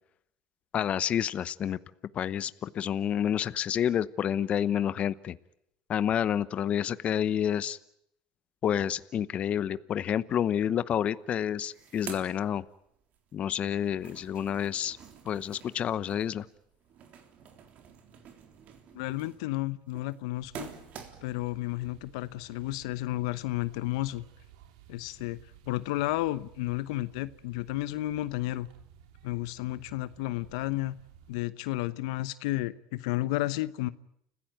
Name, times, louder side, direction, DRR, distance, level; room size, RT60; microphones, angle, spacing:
voice 1, 0.7-1.8 2.1-5.4 5.9-7.8 8.6-12.6 13.3-15.0 15.2-16.5, left 9 dB, 40° left, 16 dB, 0.9 m, -29 dB
sound 1, 11.0-11.1 11.4-13.2 13.6-21.5, right 7 dB, 50° right, 3.7 m, -48 dB
voice 2, 18.9-20.7 21.2-24.2 24.9-25.4 25.7-28.7 29.2-31.0 31.3-33.9, left 17 dB, 80° left, 15 dB, 0.9 m, -32 dB
sound 2, 20.4-31.4, right 10 dB, 80° right, 2.7 m, -56 dB
30.0 x 16.0 x 9.3 m, 0.76 s
supercardioid pair, 100°, 3 cm